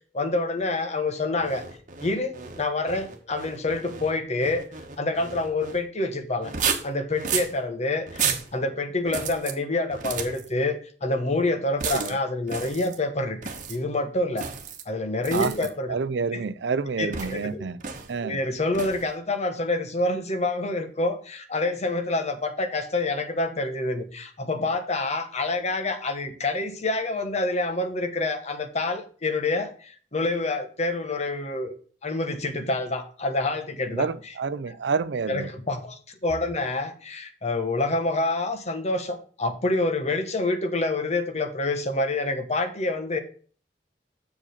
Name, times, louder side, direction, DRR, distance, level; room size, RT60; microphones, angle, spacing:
voice 1, 0.1-1.6 2.0-4.6 5.0-6.5 6.8-8.3 8.5-13.4 13.7-14.5 14.9-16.0 16.3-16.4 17.0-17.7 18.2-31.7 32.0-34.1 34.7-34.8 35.3-43.2, left 2 dB, 40° left, 1.2 m, -27 dB
sound 1, 1.4-5.8 6.4-7.5 8.1-8.5 9.1-9.5 9.9-10.5 11.8-12.2 12.5-13.0 13.4-13.8 14.4-14.8 15.2-15.7 17.1-17.5 17.8-18.1 18.7-19.1, right 6 dB, 50° right, 1.2 m, -32 dB
voice 2, 15.9-17.8 18.1-18.4 33.9-35.5, right 5 dB, 80° right, 0.5 m, -28 dB
7.2 x 4.9 x 6.5 m
head